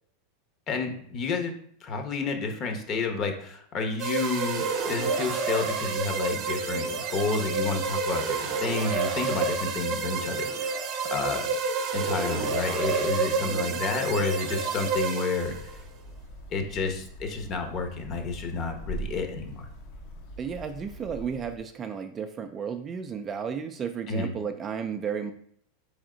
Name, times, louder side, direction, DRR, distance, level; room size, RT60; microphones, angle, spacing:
voice 1, 0.7-1.5 1.8-10.8 11.1-11.5 11.9-15.5 16.5-19.7 24.1-24.3, left 4 dB, 35° left, 5 dB, 0.9 m, -30 dB
sound 1, 4.0-15.8, right 4 dB, 45° right, 0.9 m, -29 dB
voice 2, 13.5-13.8 20.4-25.3, right 7 dB, 25° right, 7 dB, 0.3 m, -33 dB
sound 2, 15.4-21.6, right 1 dB, 60° left, 1.0 m, -42 dB
4.1 x 3.5 x 3.8 m, 0.63 s
supercardioid pair, 135°, 0 cm